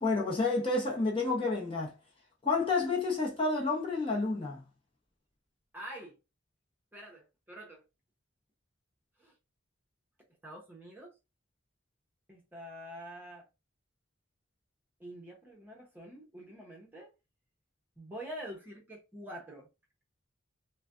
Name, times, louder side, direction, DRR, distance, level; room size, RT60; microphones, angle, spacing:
voice 1, 0.0-1.9 2.4-4.6, left 3 dB, 25° left, 0.8 m, -30 dB
voice 2, 5.7-6.2 6.9-7.8 9.2-9.3 10.4-11.1 12.3-13.5 15.0-17.1 18.0-19.7, right 1 dB, 10° right, 0.8 m, -46 dB
3.9 x 2.2 x 2.5 m
head